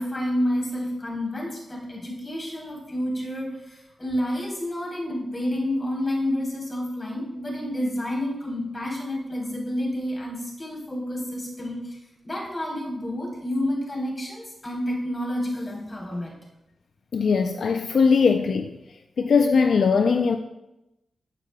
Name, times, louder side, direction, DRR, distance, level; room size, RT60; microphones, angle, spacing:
voice 1, 0.0-16.4, left 1 dB, 30° left, 3.8 m, -29 dB
voice 2, 17.1-18.7 19.2-20.4, left 5 dB, 75° left, 0.5 m, -20 dB
14.5 x 9.3 x 2.3 m
cardioid pair, 85°, 0 cm